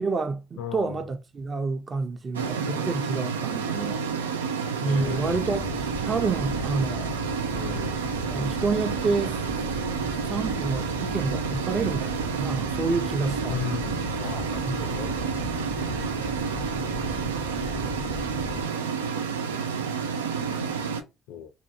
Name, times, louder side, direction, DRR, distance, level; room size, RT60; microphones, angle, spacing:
voice 1, 0.0-4.0 4.8-7.1 8.3-9.4 10.3-13.6 14.6-15.1, right 4 dB, 35° right, 0.6 m, -29 dB
voice 2, 0.6-1.1 4.8-5.8 7.5-8.1 13.5-15.3 16.9-18.2 18.5-18.8 21.3-21.5, left 9 dB, 70° left, 0.4 m, -38 dB
sound 1, 2.3-21.0, right 6 dB, 90° right, 0.3 m, -30 dB
sound 2, 5.0-18.7, left 4 dB, 15° left, 0.5 m, -37 dB
2.6 x 2.2 x 2.6 m
hypercardioid pair, 55°, 0 cm